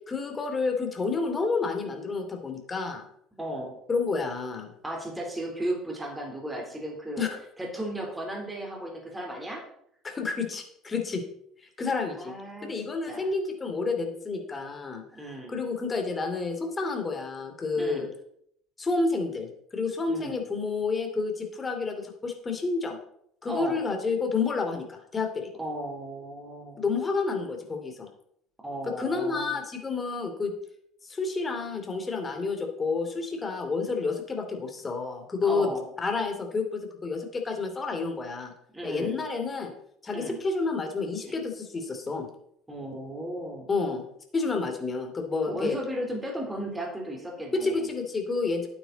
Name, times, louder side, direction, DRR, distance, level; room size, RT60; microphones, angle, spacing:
voice 1, 0.1-3.0 3.9-4.7 7.2-7.4 10.0-11.2 11.8-12.3 12.6-15.0 15.5-18.1 18.8-23.0 23.4-25.5 26.8-28.1 28.8-30.5 31.0-35.7 36.0-38.5 38.8-39.7 40.0-42.3 43.7-44.0 44.3-45.8 47.5-48.7, left 4 dB, 25° left, 4 dB, 2.7 m, -29 dB
voice 2, 3.4-3.8 4.8-7.3 7.6-9.6 12.1-12.7 13.1-13.2 15.1-15.6 17.8-18.1 20.1-20.4 23.4-23.8 25.6-26.8 28.6-29.6 35.4-35.8 38.7-39.2 40.1-40.4 41.3-41.4 42.7-43.7 45.5-47.9, right 1 dB, 10° right, 0 dB, 3.5 m, -35 dB
12.0 x 9.2 x 4.1 m, 0.71 s
supercardioid pair, 105°, 0 cm